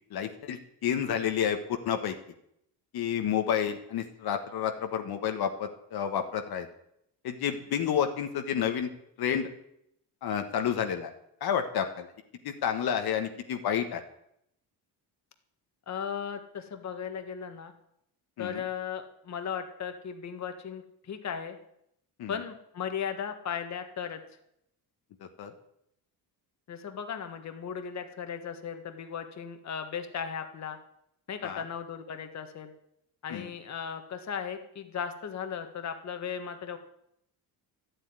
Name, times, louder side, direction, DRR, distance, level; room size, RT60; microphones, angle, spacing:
voice 1, 0.1-1.6 1.8-2.2 2.9-6.7 7.2-8.9 9.2-9.5 10.2-11.1 11.4-12.1 12.4-14.0 18.4-18.6 22.2-22.4 25.4-25.5 31.4-31.6 33.3-33.5, left 8 dB, 65° left, 6 dB, 1.5 m, -30 dB
voice 2, 15.9-17.7 18.4-21.6 22.3-24.2 26.7-30.8 31.3-32.7 33.2-36.8, left 7 dB, 45° left, 7 dB, 1.6 m, -36 dB
13.0 x 8.0 x 9.7 m, 0.76 s
cardioid pair, 125°, 39 cm